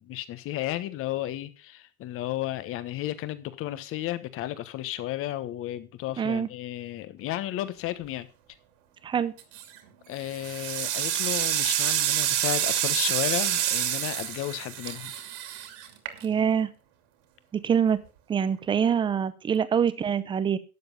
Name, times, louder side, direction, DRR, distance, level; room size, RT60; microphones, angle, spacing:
voice 1, 0.0-8.3 10.1-15.1, left 14 dB, 30° left, 1.2 m, -33 dB
voice 2, 6.2-6.5 9.0-9.3 16.2-16.7 17.6-18.0 18.3-20.6, right 7 dB, 10° right, 0.6 m, -25 dB
sound 1, 9.4-9.8 10.3-16.5, right 11 dB, 55° right, 2.7 m, -28 dB
12.0 x 7.8 x 5.4 m
hypercardioid pair, 135°, 44 cm